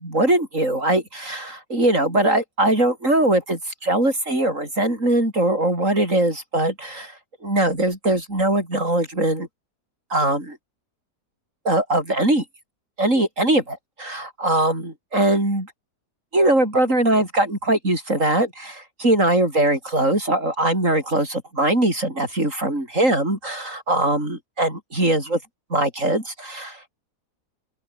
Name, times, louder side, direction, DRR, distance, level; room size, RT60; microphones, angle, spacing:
voice 1, 0.0-7.2 7.4-9.5 10.1-10.6 11.6-12.4 13.0-15.7 16.3-25.4 25.7-26.9, right 1 dB, 50° right, 8.6 m, -21 dB
open air
omnidirectional pair, 1.7 m